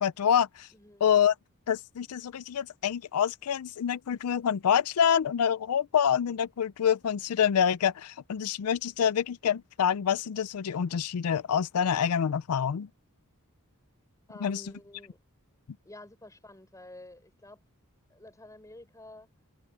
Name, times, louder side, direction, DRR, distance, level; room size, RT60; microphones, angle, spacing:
voice 1, 0.0-0.7 1.0-1.3 1.7-12.9 14.4-14.6, left 8 dB, 90° left, 0.4 m, -26 dB
voice 2, 0.7-1.1 14.3-15.2 15.8-17.6 18.1-19.3, left 1 dB, 15° left, 4.3 m, -49 dB
head